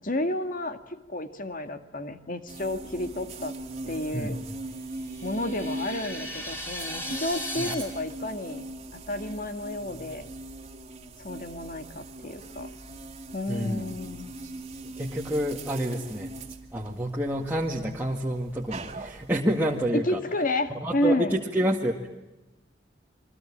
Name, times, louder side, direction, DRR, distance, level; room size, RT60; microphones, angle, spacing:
voice 1, 0.0-3.6 3.9-4.3 5.2-8.6 8.9-10.3 11.2-12.7 13.3-14.3 20.0-21.4, left 1 dB, 45° left, 8 dB, 2.0 m, -31 dB
sound 1, 2.5-19.9, right 2 dB, 35° right, 2.5 m, -41 dB
voice 2, 4.1-4.5 7.6-7.7 13.5-13.8 14.4-14.5 14.8-16.3 16.7-20.2 20.7-22.1, equal, 10° right, -2 dB, 2.0 m, -28 dB
sound 2, 5.0-7.7, left 1 dB, 10° left, 6.9 m, -36 dB
29.0 x 23.5 x 8.7 m, 1.0 s
head